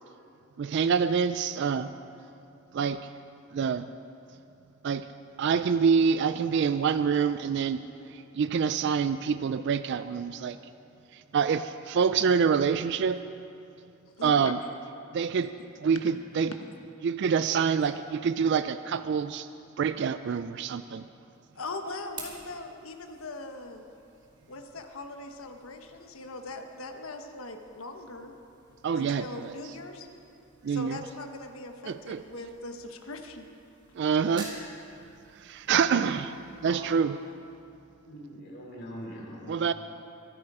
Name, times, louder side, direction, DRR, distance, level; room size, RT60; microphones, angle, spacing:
voice 1, 0.6-1.9 2.7-3.0 3.5-3.9 4.8-5.0 5.4-7.8 8.1-10.6 11.1-13.2 14.2-14.6 15.1-15.5 15.8-16.5 17.0-19.5 19.8-21.0 28.8-29.5 30.6-31.0 31.9-32.2 34.0-34.5 35.4-36.3 36.6-37.1 39.5-39.7, right 6 dB, 55° right, 12 dB, 0.3 m, -26 dB
voice 2, 14.2-14.5 21.6-23.8 24.5-28.3 28.9-30.1 30.7-33.5, left 2 dB, 90° left, 5 dB, 1.1 m, -40 dB
sound 1, 21.3-38.3, right 2 dB, 20° right, 2.2 m, -52 dB
voice 3, 35.7-36.1 36.6-36.9 38.1-39.6, equal, 55° left, -2 dB, 3.0 m, -42 dB
23.5 x 8.7 x 4.9 m, 2.6 s
head